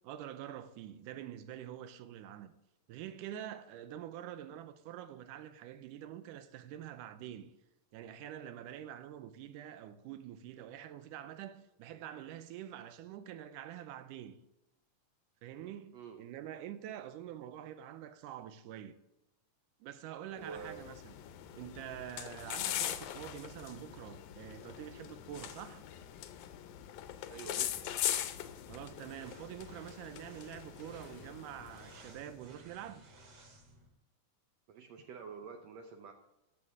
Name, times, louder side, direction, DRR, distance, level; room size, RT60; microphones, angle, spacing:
voice 1, 0.0-2.5 2.9-7.5 7.9-14.4 15.4-19.0 19.8-21.1 21.5-25.8 28.7-33.0, right 11 dB, 90° right, 2.2 m, -46 dB
voice 2, 20.3-20.8 27.3-27.9 34.7-36.1, right 6 dB, 75° right, 1.6 m, -47 dB
sound 1, 20.4-32.2, left 12 dB, 80° left, 2.1 m, -41 dB
sound 2, 28.3-33.9, right 2 dB, 55° right, 2.9 m, -59 dB
12.5 x 7.3 x 3.6 m
omnidirectional pair, 3.7 m